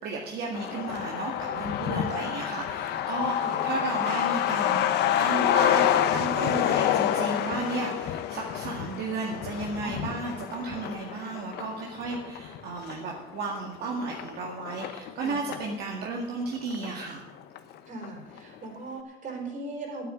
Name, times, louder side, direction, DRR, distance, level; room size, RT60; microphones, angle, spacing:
voice 1, 0.0-1.3 1.6-4.8 5.2-17.2, right 3 dB, 75° right, -1 dB, 1.9 m, -34 dB
Truck, 0.5-15.7 16.0-16.1 16.4-17.3 17.6-17.7 18.0-18.4, left 11 dB, 80° left, 0.9 m, -28 dB
voice 2, 1.4-1.8 3.4-3.7 6.7-7.7 9.8-10.2 15.2-15.6 17.9-20.1, right 2 dB, 50° right, 2 dB, 4.3 m, -40 dB
9.4 x 8.6 x 9.2 m, 1.1 s
cardioid pair, 110°, 17 cm